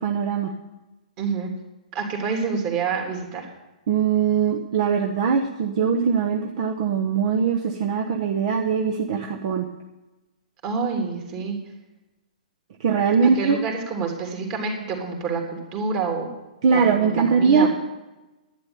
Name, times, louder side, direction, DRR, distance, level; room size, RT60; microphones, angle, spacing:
voice 1, 0.0-0.5 3.9-9.7 12.8-13.6 16.6-17.7, right 6 dB, 50° right, 2 dB, 1.1 m, -21 dB
voice 2, 1.2-1.5 1.9-3.5 10.6-11.6 13.2-16.4 16.7-17.7, right 5 dB, 30° right, 2 dB, 3.1 m, -27 dB
11.0 x 9.6 x 7.1 m, 1.0 s
figure-of-eight pair, 120°, 4 cm